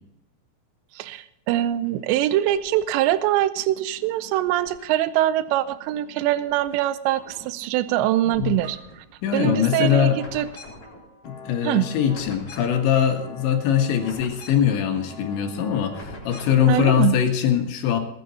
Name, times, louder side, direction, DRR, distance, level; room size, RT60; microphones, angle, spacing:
voice 1, 1.0-8.8 9.3-10.5 11.6-11.9 16.7-17.2, right 13 dB, 85° right, 14 dB, 2.9 m, -23 dB
sound 1, 1.6-3.1 3.6-5.1 5.5-6.8 7.0-17.0, left 1 dB, 30° left, 4.8 m, -43 dB
voice 2, 9.2-10.2 11.3-18.0, left 9 dB, 85° left, 4 dB, 4.0 m, -22 dB
20.0 x 9.2 x 4.2 m, 0.86 s
omnidirectional pair, 5.2 m